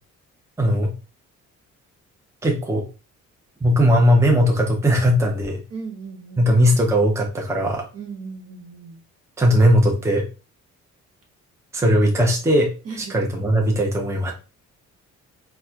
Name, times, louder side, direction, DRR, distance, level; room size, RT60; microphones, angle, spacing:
voice 1, 0.6-0.9 2.4-2.8 3.6-5.6 6.4-7.8 9.4-10.2 11.7-12.7 13.0-14.3, equal, 10° right, 0 dB, 0.6 m, -18 dB
voice 2, 5.7-6.7 7.9-9.0 12.8-13.1, right 5 dB, 55° right, 2 dB, 1.2 m, -36 dB
4.0 x 2.2 x 2.3 m, 0.32 s
cardioid pair, 90°, 30 cm